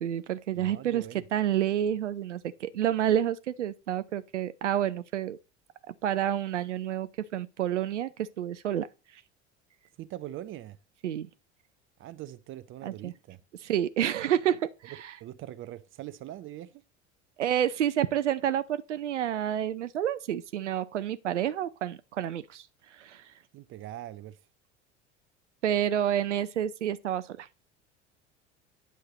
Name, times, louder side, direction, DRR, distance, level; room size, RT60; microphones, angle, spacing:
voice 1, 0.0-1.0 1.3-5.4 5.9-8.9 11.0-11.3 12.8-13.1 13.6-15.1 17.4-23.3 25.6-27.7, right 10 dB, 80° right, 0.6 m, -29 dB
voice 2, 0.5-1.2 10.0-10.8 12.0-13.4 14.9-16.8 23.5-24.4, right 13 dB, 35° right, 0.6 m, -42 dB
10.0 x 6.3 x 4.0 m
figure-of-eight pair, 70°, 35 cm